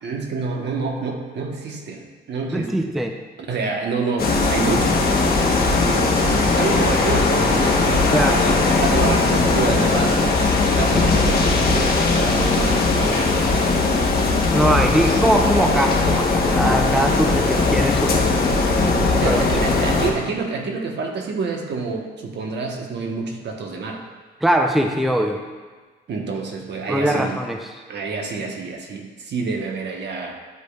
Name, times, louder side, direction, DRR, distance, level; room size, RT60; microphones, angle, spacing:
voice 1, 0.0-2.0 2.3-2.7 3.5-8.1 8.4-13.9 14.9-15.2 19.1-24.0 26.1-27.4 27.9-30.3, right 4 dB, 60° right, 2 dB, 1.1 m, -28 dB
voice 2, 2.5-3.2 8.1-8.5 14.5-18.2 19.0-19.4 24.4-25.4 26.9-27.7, right 1 dB, ahead, 4 dB, 0.5 m, -21 dB
sound 1, 4.2-20.1, left 3 dB, 50° left, 1.1 m, -19 dB
10.5 x 4.9 x 2.4 m, 1.4 s
cardioid pair, 90°, 20 cm